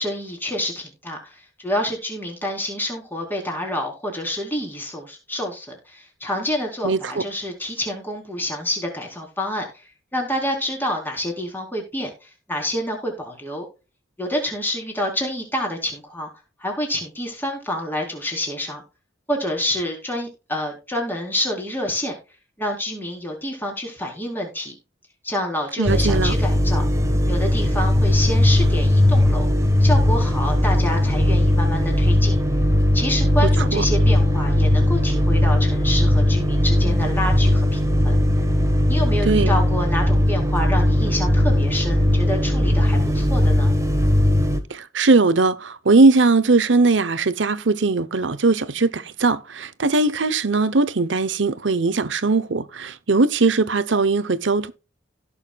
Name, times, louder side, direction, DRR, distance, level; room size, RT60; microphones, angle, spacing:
voice 1, 0.0-9.6 10.1-13.7 14.2-16.3 16.6-18.8 19.3-22.2 22.6-24.7 25.2-26.8 27.3-29.5 29.8-32.4 32.9-38.1 38.9-43.7, left 1 dB, 10° left, 3.9 m, -28 dB
voice 2, 6.8-7.2 25.8-26.3 33.4-33.8 39.2-39.6 44.7-54.7, right 3 dB, 80° right, 0.9 m, -19 dB
sound 1, 25.9-44.6, left 1 dB, 15° right, 1.5 m, -18 dB
17.0 x 6.5 x 2.4 m
head